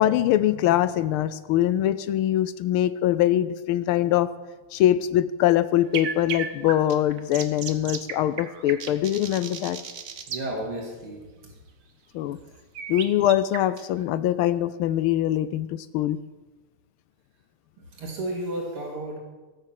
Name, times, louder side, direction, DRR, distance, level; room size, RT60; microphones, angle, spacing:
voice 1, 0.0-4.3 4.7-9.8 12.1-12.4 12.9-16.2, left 12 dB, 80° left, 14 dB, 1.4 m, -23 dB
sound 1, 5.9-10.4 12.7-14.0, right 6 dB, 50° right, 1.1 m, -35 dB
voice 2, 10.3-11.2 17.9-19.2, right 1 dB, 80° right, -1 dB, 3.5 m, -32 dB
17.5 x 6.8 x 7.5 m, 1.2 s
omnidirectional pair, 2.4 m